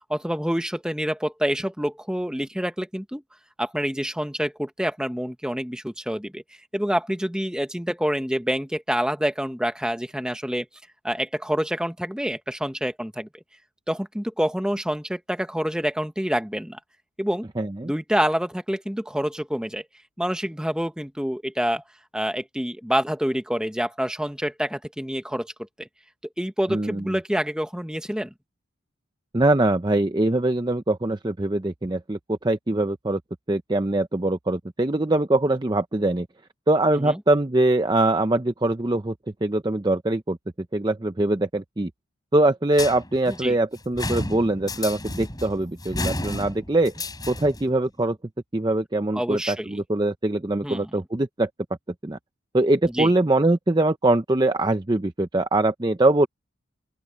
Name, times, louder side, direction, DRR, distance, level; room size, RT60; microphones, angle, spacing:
voice 1, 0.1-3.2 3.6-6.4 6.7-10.7 11.0-13.3 13.9-16.8 17.2-17.5 17.8-19.8 20.2-21.8 22.1-25.5 25.8-25.9 26.4-28.3 37.0-37.2 43.3-43.6 49.1-49.8 50.6-50.9 52.9-53.1, equal, 5° right, 1.3 m, -27 dB
voice 2, 17.6-17.9 26.7-27.2 29.3-33.2 33.5-36.3 36.7-39.1 39.4-40.4 40.7-41.9 42.3-48.2 48.5-51.5 52.0-52.2 52.5-56.3, right 2 dB, 20° right, 0.6 m, -23 dB
sound 1, 42.7-47.7, left 2 dB, 20° left, 5.5 m, -32 dB
open air
head